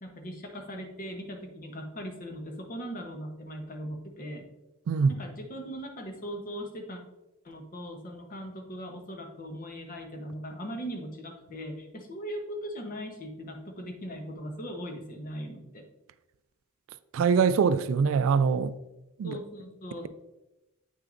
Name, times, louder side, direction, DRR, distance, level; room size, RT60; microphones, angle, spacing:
voice 1, 0.0-4.4 5.1-7.0 7.4-15.8 19.2-20.1, equal, 40° left, 0.9 m, -39 dB
voice 2, 17.1-18.7 19.2-19.4, right 6 dB, 65° right, 0.3 m, -23 dB
8.5 x 6.2 x 2.5 m
head